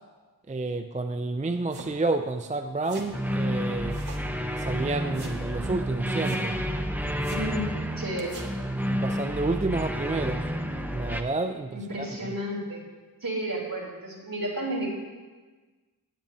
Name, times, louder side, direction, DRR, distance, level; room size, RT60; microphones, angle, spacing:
voice 1, 0.5-4.0 4.6-6.6 8.9-10.5 10.9-12.3, right 3 dB, 20° right, 7 dB, 0.4 m, -30 dB
sound 1, 1.7-2.0 2.8-3.1 3.9-4.3 4.6-4.7 5.1-5.4 6.2-6.5 7.2-7.5 8.2-8.5, right 2 dB, 75° right, 1.4 m, -43 dB
sound 2, 3.1-11.2, equal, 5° right, 0.8 m, -30 dB
voice 2, 7.3-7.7 8.0-8.4 11.7-12.8 13.2-14.9, right 1 dB, 60° right, -3 dB, 3.1 m, -32 dB
18.0 x 10.0 x 2.7 m, 1.3 s
wide cardioid pair, 75°, 38 cm